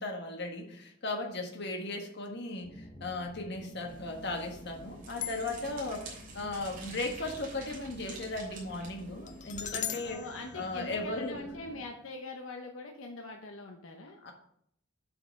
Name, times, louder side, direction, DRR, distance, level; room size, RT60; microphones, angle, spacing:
voice 1, 0.0-10.2 10.5-11.4 14.2-14.3, left 2 dB, 55° left, 2 dB, 1.5 m, -37 dB
sound 1, 2.6-11.9, left 1 dB, 20° left, 1.1 m, -51 dB
sound 2, 3.9-9.8, right 3 dB, 40° right, 3.2 m, -49 dB
sound 3, 5.2-5.9 9.3-11.5, left 10 dB, 35° left, 0.5 m, -41 dB
voice 2, 10.0-14.2, left 2 dB, 75° left, 2 dB, 1.0 m, -43 dB
7.8 x 4.9 x 6.4 m, 0.70 s
head